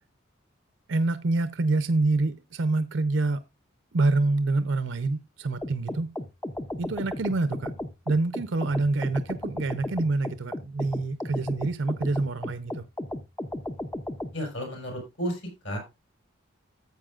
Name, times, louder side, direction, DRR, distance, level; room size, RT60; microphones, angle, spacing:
voice 1, 0.9-3.4 3.9-6.1 6.8-7.7 8.1-12.8, right 2 dB, 65° right, 0.6 m, -26 dB
sound 1, 5.6-14.3, left 1 dB, 10° left, 0.5 m, -35 dB
voice 2, 14.3-15.8, equal, 70° left, 5.6 m, -33 dB
14.0 x 8.0 x 2.4 m
head